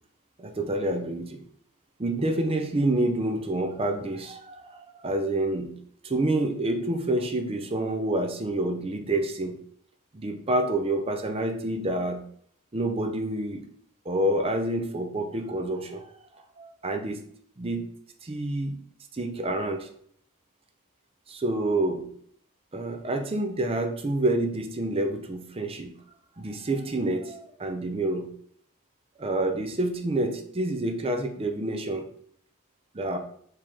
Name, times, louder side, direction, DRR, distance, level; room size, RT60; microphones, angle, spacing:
voice 1, 0.4-1.4 2.0-5.8 6.0-9.6 10.1-12.3 12.7-13.6 14.1-16.0 16.6-17.2 17.6-17.8 18.2-18.8 19.1-19.9 21.3-22.1 22.7-25.9 26.4-28.3 29.2-32.1 32.9-33.2, right 1 dB, 25° right, 5 dB, 0.5 m, -28 dB
4.8 x 3.0 x 3.6 m, 0.65 s
head